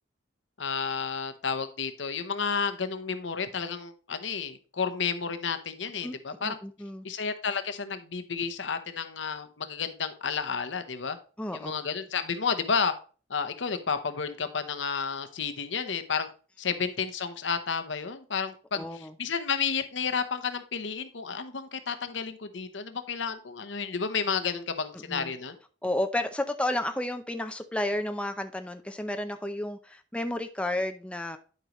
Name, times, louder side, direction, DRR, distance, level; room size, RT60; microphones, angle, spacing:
voice 1, 0.6-6.6 7.0-11.2 11.5-12.9 13.3-16.3 16.6-25.6, left 6 dB, 70° left, 0.9 m, -31 dB
voice 2, 6.4-7.1 11.4-11.7 18.7-19.1 24.9-25.3 25.8-31.4, left 1 dB, 5° left, 0.5 m, -32 dB
11.0 x 5.1 x 3.0 m
head